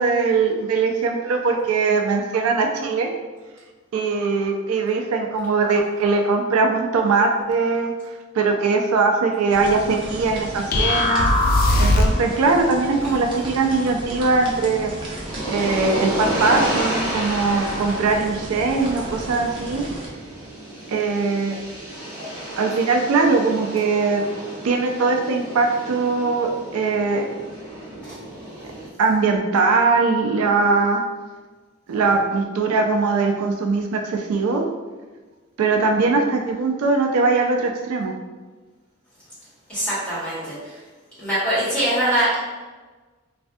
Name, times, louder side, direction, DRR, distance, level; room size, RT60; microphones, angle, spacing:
voice 1, 0.0-3.1 3.9-7.9 8.3-11.3 11.8-14.9 15.5-19.9 20.9-21.5 22.6-24.2 24.6-27.3 29.0-31.0 31.9-34.6 35.6-38.1, right 4 dB, 85° right, 3 dB, 0.4 m, -21 dB
sound 1, 9.5-20.1, right 1 dB, 20° right, 0.4 m, -34 dB
sound 2, 10.7-12.3, left 1 dB, 45° left, 0.3 m, -18 dB
sound 3, 15.2-28.9, right 1 dB, 60° right, 1.0 m, -31 dB
voice 2, 39.7-40.8 41.2-42.4, right 1 dB, 5° left, -11 dB, 1.2 m, -23 dB
3.3 x 2.2 x 2.6 m, 1.3 s
head